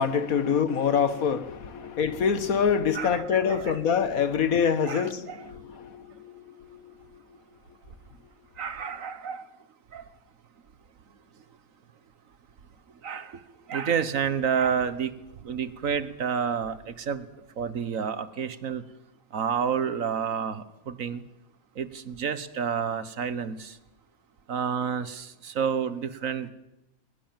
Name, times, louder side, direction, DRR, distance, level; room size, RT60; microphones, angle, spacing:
voice 1, 0.0-6.1 6.4-6.5, left 7 dB, 85° left, 1.8 m, -25 dB
voice 2, 2.9-3.8 4.9-5.4 8.6-9.5 9.9-10.0 13.0-13.4 13.7-15.1 15.4-17.3 17.6-18.8 19.3-21.2 21.8-23.8 24.5-26.5, right 7 dB, 70° right, 1.6 m, -29 dB
22.0 x 21.0 x 7.5 m
omnidirectional pair, 1.4 m